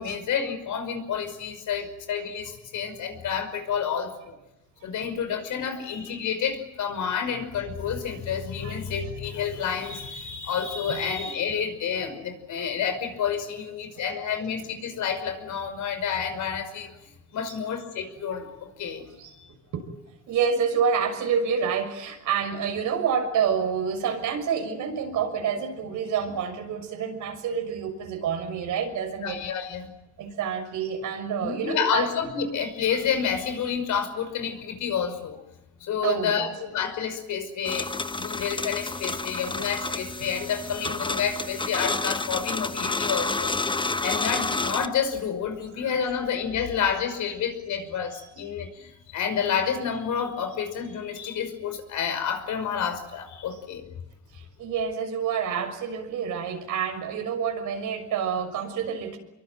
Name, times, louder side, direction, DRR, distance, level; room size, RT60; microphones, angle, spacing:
voice 1, 0.0-4.4 4.8-16.9 17.3-19.0 29.2-29.9 31.4-35.4 35.8-37.9 38.2-43.6 44.0-53.9, left 7 dB, 75° left, 7 dB, 5.7 m, -29 dB
voice 2, 20.3-29.4 30.2-32.1 36.0-36.5 40.2-40.3 48.1-48.2 54.3-59.2, right 7 dB, 85° right, 5 dB, 6.5 m, -28 dB
sound 1, 37.6-44.9, left 3 dB, 15° left, 1.1 m, -30 dB
25.5 x 23.0 x 9.2 m, 0.97 s
cardioid pair, 90°, 30 cm